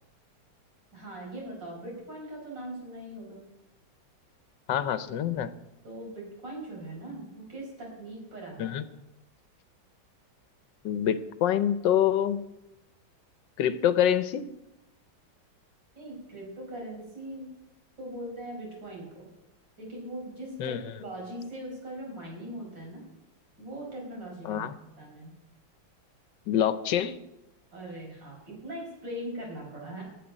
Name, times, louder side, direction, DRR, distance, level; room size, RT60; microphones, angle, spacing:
voice 1, 0.9-3.4 5.8-8.7 15.9-17.5 18.0-19.3 19.8-23.0 23.6-24.7 25.0-25.3 27.7-30.0, right 1 dB, 65° right, -1 dB, 5.8 m, -40 dB
voice 2, 4.7-5.5 8.6-8.8 10.8-12.4 13.6-14.4 20.6-20.8 24.4-24.8 26.5-27.1, left 10 dB, 70° left, 13 dB, 1.4 m, -26 dB
12.0 x 7.7 x 9.9 m, 0.94 s
omnidirectional pair, 2.1 m